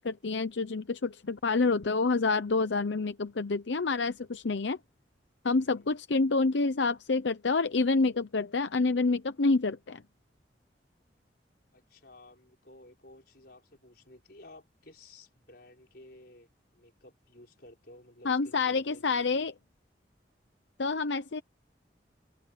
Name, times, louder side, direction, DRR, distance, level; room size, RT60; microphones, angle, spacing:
voice 1, 0.0-4.8 5.4-10.0 18.2-19.5 20.8-21.4, left 3 dB, 90° left, 0.7 m, -28 dB
voice 2, 5.5-5.9 11.7-19.5, left 1 dB, 60° left, 5.8 m, -54 dB
open air
head